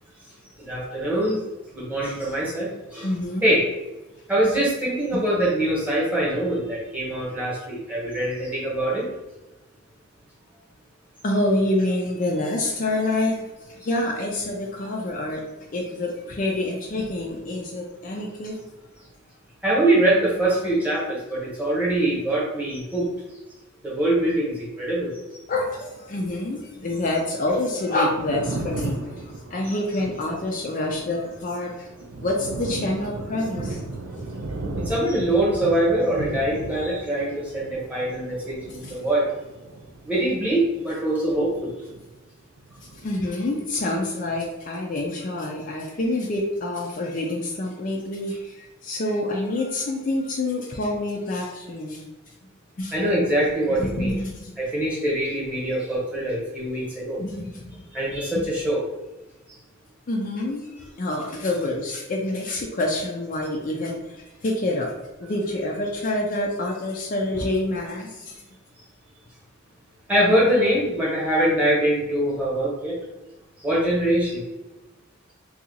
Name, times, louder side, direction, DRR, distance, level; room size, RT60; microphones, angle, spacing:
voice 1, 0.6-1.4 1.7-3.1 3.4-3.7 4.3-9.1 19.6-23.1 23.8-25.1 34.8-39.3 40.0-41.7 52.9-54.1 54.6-57.2 57.9-58.8 67.3-67.4 70.1-73.0 73.6-74.4, right 1 dB, 5° right, -6 dB, 1.0 m, -23 dB
voice 2, 3.0-3.5 5.1-5.2 11.2-13.4 13.8-18.6 25.5-31.9 32.2-33.8 38.8-38.9 43.0-52.1 52.8-52.9 53.8-54.5 57.2-57.9 60.1-64.9 65.2-68.4, left 1 dB, 40° left, -1 dB, 0.4 m, -27 dB
Thunder, 27.9-42.3 42.6-43.8, right 2 dB, 85° right, 0.4 m, -36 dB
2.7 x 2.3 x 3.8 m, 1.0 s
head